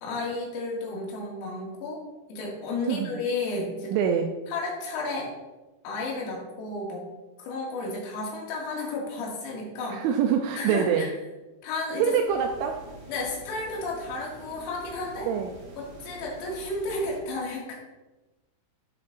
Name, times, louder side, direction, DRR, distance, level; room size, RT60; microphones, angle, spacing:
voice 1, 0.0-2.0 2.3-3.9 4.5-5.3 5.8-7.1 7.4-10.0 10.5-11.1 11.6-12.1 13.1-15.3 15.8-17.7, left 3 dB, 85° left, -3 dB, 4.8 m, -32 dB
voice 2, 3.9-4.3 9.9-11.1 12.0-12.8 15.3-15.5, right 7 dB, 85° right, 3 dB, 2.6 m, -25 dB
sound 1, 12.2-17.2, right 3 dB, 65° right, 4.8 m, -47 dB
12.5 x 8.1 x 2.6 m, 1.1 s
omnidirectional pair, 5.9 m